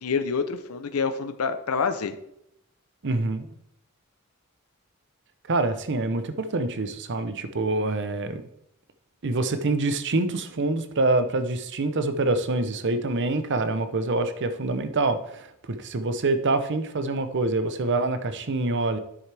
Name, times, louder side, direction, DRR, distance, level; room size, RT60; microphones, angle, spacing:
voice 1, 0.0-2.2, left 5 dB, 80° left, 9 dB, 0.7 m, -27 dB
voice 2, 3.0-3.5 5.5-8.4 9.2-19.0, right 2 dB, 55° right, 10 dB, 0.8 m, -26 dB
10.0 x 7.5 x 3.4 m, 0.79 s
head